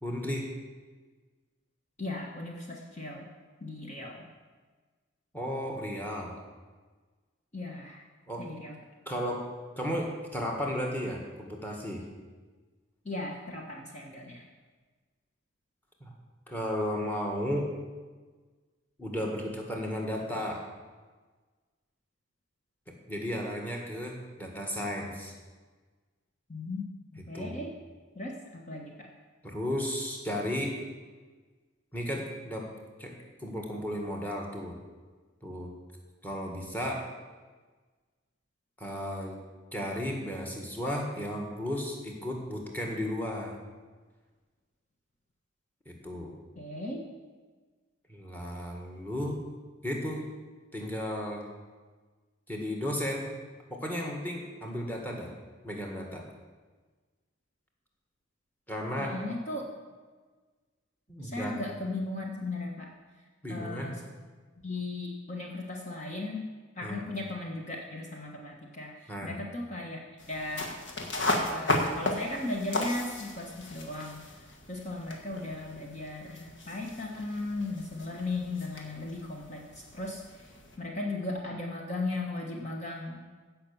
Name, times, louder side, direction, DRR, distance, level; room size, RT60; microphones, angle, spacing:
voice 1, 0.0-0.5 5.3-6.3 8.3-8.5 9.1-9.5 9.8-12.0 16.0-16.1 16.5-17.7 19.0-20.6 23.1-25.3 27.3-27.6 29.4-30.7 31.9-32.7 33.0-34.8 35.4-35.7 36.2-37.1 38.8-39.4 39.7-43.5 45.9-46.3 48.1-49.4 49.8-50.3 50.7-51.4 52.5-53.3 53.7-55.3 55.6-56.3 58.7-59.2 61.1-61.5 63.4-63.9 66.8-67.0 69.1-69.3, equal, 10° left, 0 dB, 1.7 m, -34 dB
voice 2, 2.0-3.3 3.6-4.3 7.5-8.0 8.4-8.8 13.0-14.4 26.5-26.9 27.1-27.7 28.1-29.1 46.6-47.1 59.0-59.7 61.2-62.9 63.5-64.0 64.6-66.5 66.8-70.0 70.3-70.7 71.5-80.5 80.8-83.2, left 2 dB, 35° left, 0 dB, 1.2 m, -37 dB
sound 1, 70.2-80.8, left 1 dB, 60° left, 1.6 m, -35 dB
16.0 x 5.9 x 7.0 m, 1.4 s
head